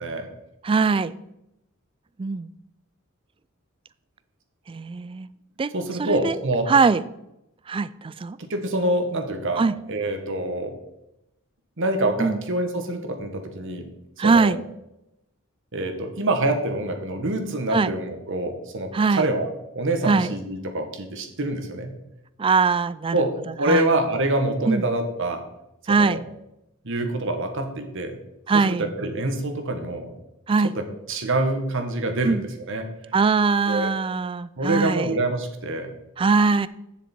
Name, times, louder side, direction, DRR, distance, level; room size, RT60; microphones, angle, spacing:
voice 1, 0.6-1.1 2.2-2.5 4.7-5.3 5.6-5.7 6.0-6.3 6.7-7.0 7.7-8.4 9.6-9.8 12.2-12.4 14.2-14.6 17.7-17.9 18.9-19.3 20.1-20.3 22.4-23.3 23.7-23.9 24.6-24.8 25.9-26.3 28.5-28.9 30.5-30.7 32.2-32.4 33.1-35.2 36.2-36.7, right 4 dB, 25° right, 17 dB, 0.3 m, -21 dB
voice 2, 5.7-6.7 8.4-9.6 9.9-10.7 11.8-13.9 14.2-14.5 15.7-19.5 19.7-22.0 23.1-25.4 25.9-26.2 26.8-28.2 28.7-30.1 30.8-32.4 32.7-32.9 33.6-33.9 34.6-35.9, right 1 dB, 60° right, 6 dB, 1.4 m, -26 dB
9.7 x 7.3 x 4.4 m, 0.86 s
head